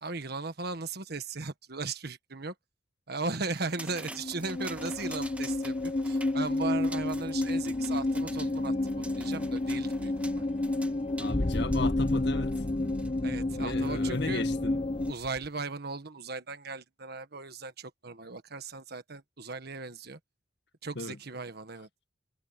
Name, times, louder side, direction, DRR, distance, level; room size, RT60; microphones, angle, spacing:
voice 1, 0.0-2.5 3.1-8.7 9.2-10.5 13.2-14.4 15.1-20.2 20.8-21.9, right 3 dB, 55° right, 1.5 m, -37 dB
sound 1, 3.2-13.2 13.8-15.6, right 1 dB, 5° right, 2.1 m, -48 dB
sound 2, 3.8-15.1, left 2 dB, 30° left, 1.0 m, -30 dB
voice 2, 11.2-12.6 13.5-14.8 21.0-21.2, left 2 dB, 65° left, 1.9 m, -35 dB
head